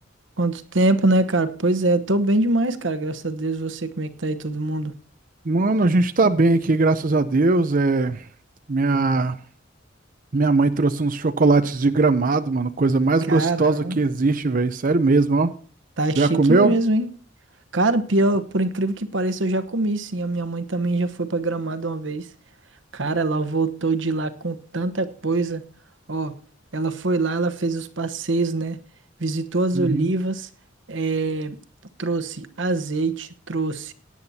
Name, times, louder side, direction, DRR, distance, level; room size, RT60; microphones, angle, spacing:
voice 1, 0.4-4.9 13.3-14.0 16.0-17.1 17.7-22.3 22.9-25.6 26.1-26.3 26.7-28.8 29.2-30.5 30.9-31.6 32.0-33.9, right 2 dB, 80° right, 1.1 m, -24 dB
voice 2, 5.5-8.3 8.7-9.4 10.3-15.5 16.2-16.7 29.7-30.1, right 3 dB, 45° right, 0.6 m, -20 dB
17.5 x 9.7 x 2.8 m
head